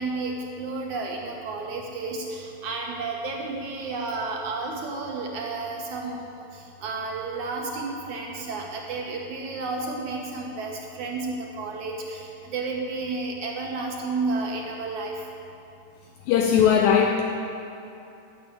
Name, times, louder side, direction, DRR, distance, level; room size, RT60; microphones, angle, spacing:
voice 1, 0.0-15.2, right 3 dB, 65° right, 0 dB, 1.9 m, -32 dB
voice 2, 16.3-17.2, left 8 dB, 85° left, 2 dB, 2.0 m, -19 dB
14.0 x 7.4 x 9.8 m, 2.8 s
omnidirectional pair, 4.9 m